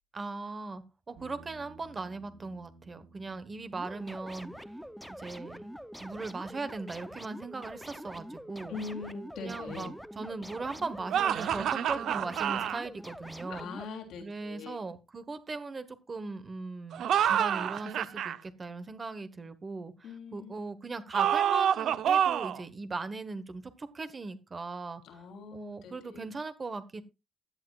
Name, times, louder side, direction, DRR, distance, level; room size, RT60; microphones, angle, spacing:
voice 1, 0.1-4.5 5.2-5.7 6.0-8.8 9.4-13.7 14.2-25.2 25.5-27.0, right 3 dB, 25° right, 1.2 m, -39 dB
sound 1, 1.2-9.5, right 3 dB, 90° right, 5.3 m, -59 dB
sound 2, 3.7-13.8, equal, ahead, 0.7 m, -45 dB
voice 2, 8.7-10.0 13.5-14.8 20.0-20.5 25.0-26.2, left 4 dB, 85° left, 3.1 m, -42 dB
sound 3, 11.1-12.8 16.9-18.4 21.1-22.6, right 9 dB, 65° right, 0.7 m, -27 dB
16.0 x 10.5 x 2.4 m
cardioid pair, 170°, 0 cm